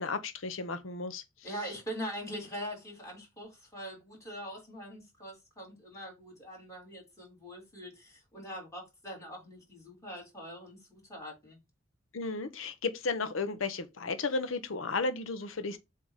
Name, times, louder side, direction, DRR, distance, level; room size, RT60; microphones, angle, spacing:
voice 1, 0.0-1.5 12.1-15.8, left 3 dB, 75° left, 0.8 m, -34 dB
voice 2, 1.4-11.6, equal, 15° left, 3.3 m, -43 dB
7.4 x 2.9 x 4.8 m
head